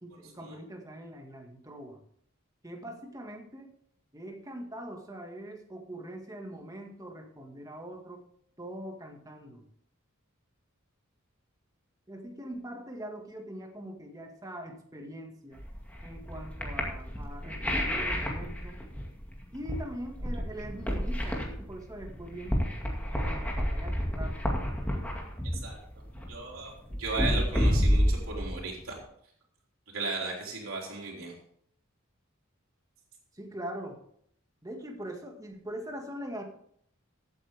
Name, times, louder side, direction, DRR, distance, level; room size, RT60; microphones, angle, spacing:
voice 1, 0.0-2.0 2.6-3.7 4.1-8.2 8.6-9.6 12.1-15.6 16.0-18.8 19.5-22.6 23.1-24.4 33.3-34.0 34.6-36.4, right 1 dB, 15° right, 2 dB, 2.0 m, -42 dB
sound 1, 15.6-29.0, equal, 5° left, 2.3 m, -30 dB
voice 2, 26.3-29.0 29.9-31.3, right 3 dB, 80° right, -2 dB, 3.8 m, -36 dB
15.5 x 8.7 x 3.6 m, 0.67 s
head